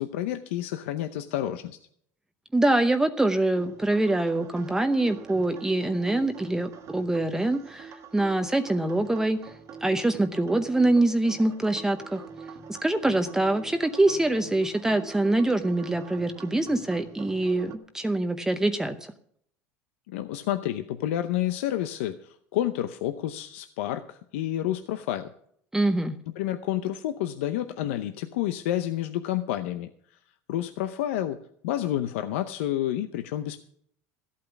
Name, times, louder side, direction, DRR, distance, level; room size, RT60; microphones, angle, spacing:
voice 1, 0.0-1.8 20.1-25.3 26.4-29.9 30.5-31.4 31.6-33.6, left 12 dB, 90° left, 9 dB, 0.7 m, -29 dB
voice 2, 2.5-9.5 9.8-12.2 12.8-19.1 25.7-26.2, right 2 dB, 10° right, 7 dB, 0.7 m, -24 dB
sound 1, 3.5-17.8, right 6 dB, 50° right, 1.6 m, -44 dB
14.0 x 8.6 x 6.0 m, 0.65 s
supercardioid pair, 115°, 7 cm